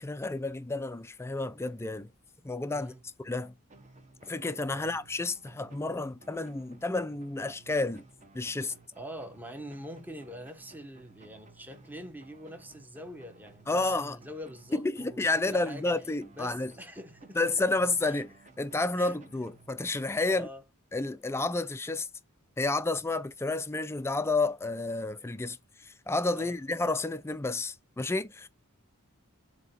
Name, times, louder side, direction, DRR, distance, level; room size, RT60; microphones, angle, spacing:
voice 1, 0.0-2.1 2.4-2.9 3.2-3.5 4.2-8.0 8.3-8.7 13.7-14.2 14.7-16.7 17.4-20.5 20.9-22.1 22.6-25.6 25.8-28.5, left 2 dB, 10° left, 0.4 m, -30 dB
sound 1, 3.7-20.2, right 3 dB, 35° right, 1.0 m, -57 dB
voice 2, 8.6-16.0 16.3-17.7 18.1-18.2 19.0-19.2 20.2-20.6 26.3-26.6, equal, 10° right, 0.8 m, -44 dB
7.6 x 2.9 x 4.2 m
head